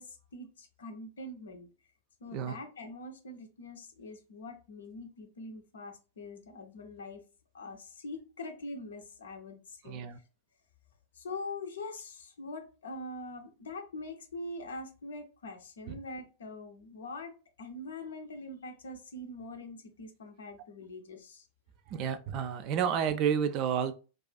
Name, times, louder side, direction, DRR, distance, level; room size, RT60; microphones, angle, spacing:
voice 1, 0.0-1.7 2.2-7.2 7.5-10.0 11.1-21.5, left 2 dB, 65° left, 0.5 m, -43 dB
voice 2, 9.9-10.2 15.9-16.0 21.9-23.9, right 8 dB, 40° right, 0.3 m, -30 dB
2.4 x 2.3 x 2.2 m
figure-of-eight pair, 90°, 0 cm